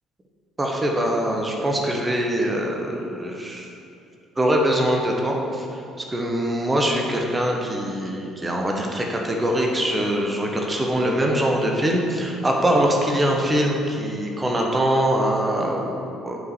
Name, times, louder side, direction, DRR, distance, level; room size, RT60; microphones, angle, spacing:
voice 1, 0.6-3.7 4.4-5.6 6.1-16.4, right 1 dB, 20° right, 0 dB, 1.1 m, -23 dB
8.0 x 4.9 x 4.8 m, 2.6 s
figure-of-eight pair, 50°, 0 cm